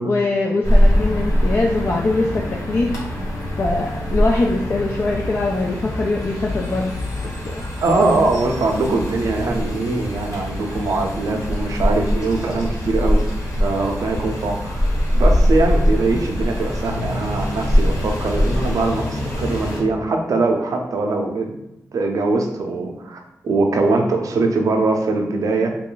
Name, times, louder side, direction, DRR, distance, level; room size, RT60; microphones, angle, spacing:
voice 1, 0.0-3.0 3.6-6.9 7.4-7.6, left 2 dB, 45° left, -1 dB, 0.4 m, -22 dB
sound 1, 0.6-19.8, equal, 65° left, 1.3 m, -22 dB
voice 2, 7.8-13.2 13.6-14.9 15.1-21.6 21.9-25.7, right 3 dB, 75° right, 3 dB, 0.5 m, -21 dB
3.1 x 2.3 x 3.8 m, 0.85 s
wide cardioid pair, 100°, 6 cm